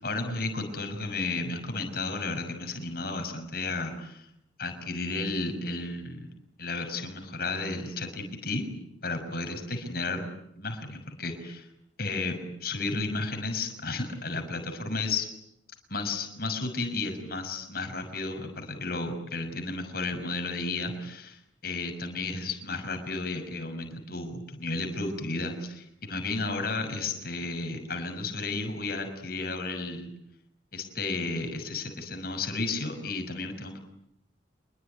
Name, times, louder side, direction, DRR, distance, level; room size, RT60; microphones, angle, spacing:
voice 1, 0.0-4.2 4.6-6.3 6.6-8.7 9.0-10.3 10.6-11.7 12.0-15.3 15.9-30.1 30.7-33.8, left 3 dB, 55° left, 6 dB, 6.2 m, -33 dB
27.5 x 22.5 x 9.6 m, 0.79 s
head